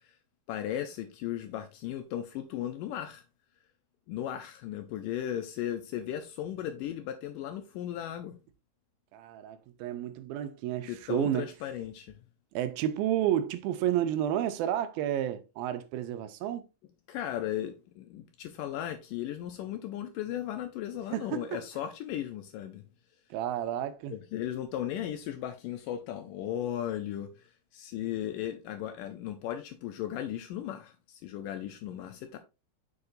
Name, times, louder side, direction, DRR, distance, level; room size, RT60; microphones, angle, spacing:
voice 1, 0.5-3.2 4.1-8.4 10.8-12.2 17.1-22.8 24.1-32.4, left 11 dB, 80° left, 2.0 m, -36 dB
voice 2, 9.1-11.5 12.5-16.7 21.1-21.4 23.3-24.2, right 11 dB, 85° right, 2.5 m, -31 dB
7.1 x 6.6 x 2.5 m
omnidirectional pair, 4.3 m